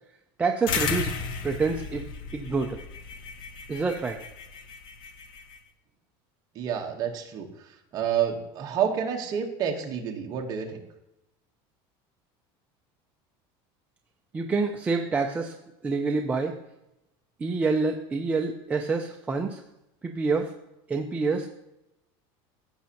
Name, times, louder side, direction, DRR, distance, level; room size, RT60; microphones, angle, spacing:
voice 1, 0.4-1.1 1.4-2.0 2.3-2.8 3.7-4.2 14.3-15.5 15.8-16.5 17.4-19.6 20.0-20.5 20.9-21.5, right 4 dB, 10° right, 2 dB, 0.4 m, -27 dB
sound 1, 0.7-5.6, left 5 dB, 40° left, 0.8 m, -34 dB
voice 2, 6.5-10.8, right 8 dB, 30° right, 2 dB, 1.1 m, -29 dB
15.0 x 6.2 x 2.9 m, 0.88 s
cardioid pair, 170°, 12 cm